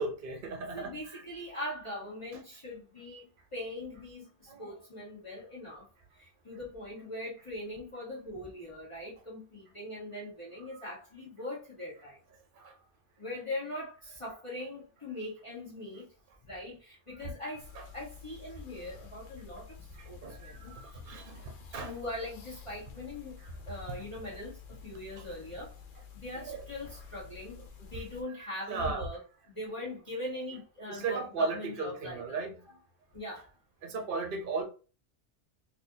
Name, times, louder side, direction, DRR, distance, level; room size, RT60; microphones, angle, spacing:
voice 1, 0.0-1.2 4.5-4.8 12.6-12.7 17.1-17.3 17.7-17.9 20.2-21.4 21.7-22.0 25.2-25.3 26.3-26.7 27.6-27.7 28.4-29.1 30.9-32.6 33.8-34.6, right 4 dB, 50° right, 0.9 m, -36 dB
voice 2, 0.7-3.2 3.5-5.8 6.2-12.2 13.2-16.1 16.4-17.7 17.9-19.6 20.1-20.8 21.8-23.4 23.7-24.6 24.8-25.7 26.1-27.6 27.9-29.2 29.6-32.4 33.1-33.5, left 1 dB, 25° left, 1.2 m, -41 dB
sound 1, 17.6-28.2, left 6 dB, 90° left, 1.1 m, -50 dB
4.1 x 2.7 x 2.7 m
omnidirectional pair, 1.3 m